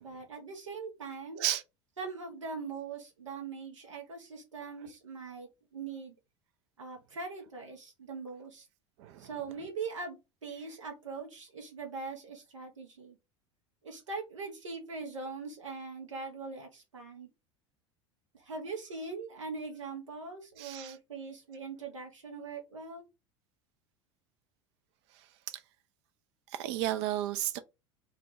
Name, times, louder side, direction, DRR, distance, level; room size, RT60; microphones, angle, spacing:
voice 1, 0.0-1.4 2.0-6.1 6.8-8.7 9.2-13.2 13.8-17.3 18.3-23.1, right 4 dB, 80° right, 0.9 m, -41 dB
voice 2, 9.0-9.3 20.6-21.0 25.5-25.6 26.5-27.6, right 13 dB, 60° right, 0.5 m, -33 dB
2.5 x 2.2 x 4.0 m
figure-of-eight pair, 75°, 16 cm